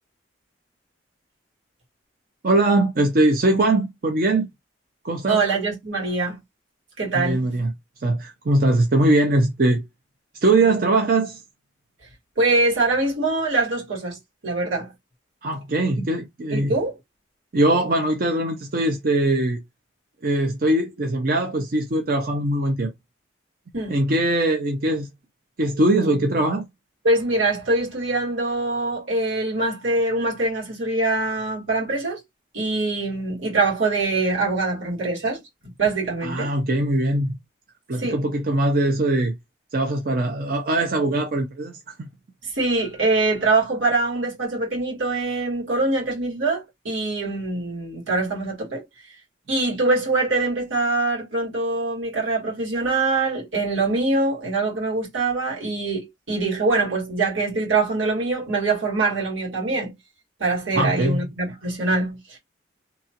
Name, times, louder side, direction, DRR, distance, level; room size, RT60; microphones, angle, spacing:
voice 1, 2.4-4.5 5.0-5.4 7.1-7.7 8.0-9.8 10.4-11.4 15.4-16.8 17.5-19.6 20.2-22.9 23.9-25.1 25.6-26.7 36.2-37.4 37.9-39.3 39.7-41.7 42.0-42.1 60.7-61.3, right 2 dB, 50° right, 0.5 m, -21 dB
voice 2, 5.3-6.4 7.0-7.4 12.4-14.2 14.4-14.9 16.5-16.9 23.7-24.0 27.0-32.2 32.5-35.4 35.8-36.5 38.0-38.2 42.4-48.9 49.5-59.9 60.4-62.4, right 3 dB, 90° right, 1.8 m, -23 dB
2.9 x 2.3 x 2.8 m
head